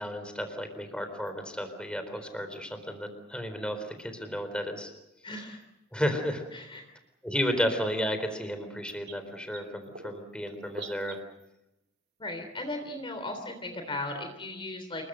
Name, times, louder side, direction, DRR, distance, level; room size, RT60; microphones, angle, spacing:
voice 1, 0.0-4.9 5.9-6.4 7.2-11.2, equal, 5° left, 7 dB, 4.0 m, -32 dB
sound 1, 1.2-1.3 2.1-2.6 4.0-4.1 5.5-5.6 6.6-6.8 7.6-7.7 7.9-8.0 8.4-8.5 8.8-11.5 12.3-12.6 13.7-13.8 14.0-14.1, right 4 dB, 60° right, 2.5 m, -46 dB
voice 2, 5.2-5.6 6.5-6.8 12.2-15.1, left 2 dB, 25° left, 6 dB, 3.4 m, -37 dB
28.5 x 22.5 x 6.6 m, 0.91 s
head